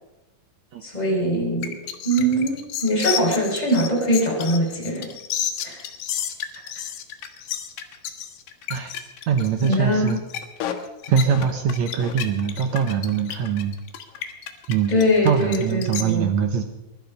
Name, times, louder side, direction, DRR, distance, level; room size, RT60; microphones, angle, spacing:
voice 1, 0.8-1.7 2.0-5.0 5.6-5.8 9.6-10.1 14.9-16.3, equal, 10° left, -3 dB, 4.8 m, -22 dB
sound 1, 1.6-16.0, left 10 dB, 80° left, 3.3 m, -31 dB
voice 2, 9.3-10.2 11.1-13.7 14.7-14.9 15.2-16.6, right 7 dB, 75° right, 7 dB, 1.6 m, -22 dB
21.5 x 12.0 x 5.3 m, 0.97 s
omnidirectional pair, 4.5 m